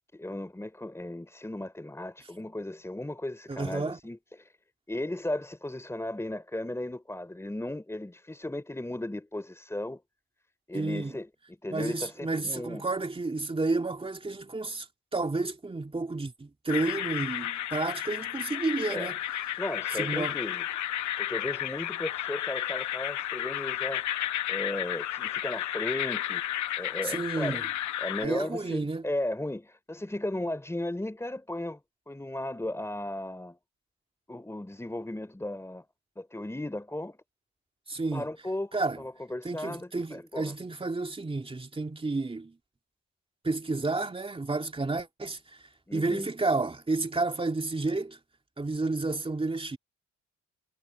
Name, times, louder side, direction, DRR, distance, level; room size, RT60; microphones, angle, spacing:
voice 1, 0.1-4.5 4.9-10.0 10.7-12.9 18.9-19.1 19.6-20.7 21.2-24.1 24.5-26.4 26.8-27.6 28.0-31.8 32.1-33.6 34.3-35.9 36.2-37.2 38.1-40.5 45.9-46.3, left 1 dB, 10° left, 3.6 m, -36 dB
voice 2, 3.5-4.0 10.7-11.2 11.7-14.9 15.1-19.2 19.9-20.4 27.0-27.6 28.2-29.0 37.9-38.3 38.7-39.0 39.4-42.6 43.4-45.4 45.9-48.2 48.6-49.8, right 3 dB, 20° right, 2.5 m, -31 dB
sound 1, 16.7-28.3, left 13 dB, 70° left, 0.9 m, -32 dB
cardioid pair, 90°, 30 cm